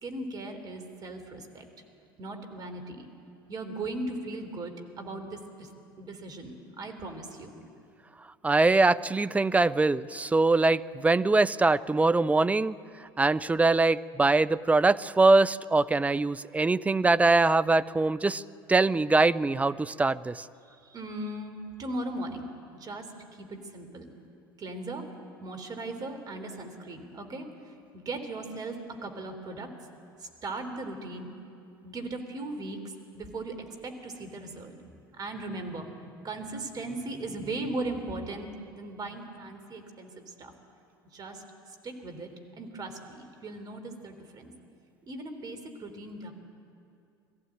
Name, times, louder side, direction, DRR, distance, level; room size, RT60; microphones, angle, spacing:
voice 1, 0.0-1.7 2.2-3.1 3.5-5.7 6.0-7.5 20.7-24.1 24.6-25.1 25.4-27.5 27.9-29.7 30.2-31.3 31.8-33.6 33.8-34.7 35.2-35.9 36.2-38.5 38.7-40.5 41.1-41.4 41.8-42.3 42.6-44.5 45.1-46.3, right 2 dB, 35° right, 6 dB, 3.5 m, -38 dB
voice 2, 8.4-12.8 13.2-18.4 18.7-20.4, right 3 dB, 10° right, 16 dB, 0.6 m, -23 dB
22.0 x 15.0 x 9.0 m, 2.5 s
figure-of-eight pair, 70°, 12 cm